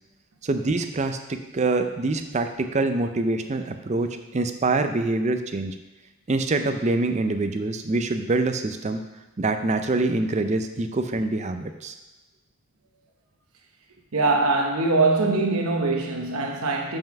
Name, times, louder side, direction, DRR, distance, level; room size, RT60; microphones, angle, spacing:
voice 1, 0.4-5.7 6.3-9.0 9.4-11.9, right 2 dB, 30° right, 7 dB, 0.5 m, -25 dB
voice 2, 14.1-17.0, right 3 dB, 75° right, 1 dB, 0.9 m, -22 dB
5.5 x 5.5 x 5.9 m, 1.0 s
head